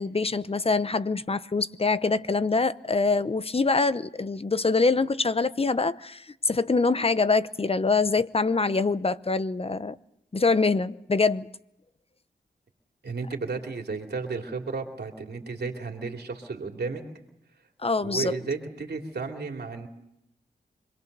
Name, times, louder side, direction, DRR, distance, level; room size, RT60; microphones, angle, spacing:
voice 1, 0.0-10.0 10.3-11.5 17.8-18.3, left 3 dB, 35° left, 0.8 m, -24 dB
voice 2, 13.0-17.0 18.0-19.9, right 4 dB, 65° right, 2.9 m, -33 dB
26.5 x 20.5 x 6.7 m
wide cardioid pair, 75°, 18 cm